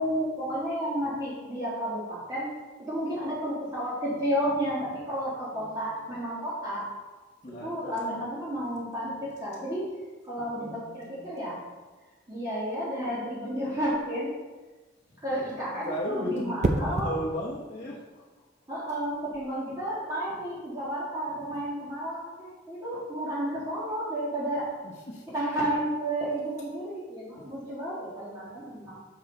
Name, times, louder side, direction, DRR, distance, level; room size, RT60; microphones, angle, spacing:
voice 1, 0.0-2.5 2.9-6.8 7.5-9.9 10.2-11.6 12.3-14.3 15.2-17.1 18.7-24.7 25.3-29.0, equal, 20° right, -9 dB, 1.6 m, -32 dB
voice 2, 5.5-5.9 7.4-8.2 10.4-11.6 15.5-18.3 24.8-25.2 25.6-25.7, left 1 dB, 35° left, -5 dB, 1.0 m, -37 dB
sound 1, 13.8-14.1 16.6-17.2 19.1-19.4, right 2 dB, 35° right, 0.6 m, -28 dB
6.7 x 6.3 x 3.8 m, 1.3 s
head